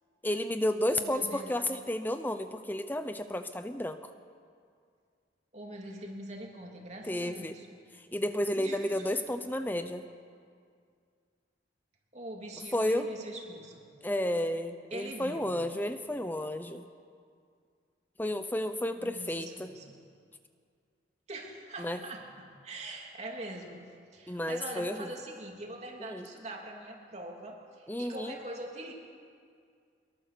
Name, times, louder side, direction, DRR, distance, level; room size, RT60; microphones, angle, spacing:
voice 1, 0.2-4.0 7.1-7.6 8.1-10.0 12.7-13.1 14.0-16.9 18.2-19.7 21.8-22.0 24.3-25.1 26.0-26.3 27.9-28.3, left 1 dB, 10° left, 9 dB, 0.7 m, -32 dB
voice 2, 0.8-1.6 5.5-7.7 8.6-9.2 12.1-13.9 14.9-15.5 19.0-20.0 21.3-28.9, right 1 dB, 35° right, 0 dB, 3.0 m, -43 dB
23.5 x 22.0 x 6.8 m, 2.2 s
head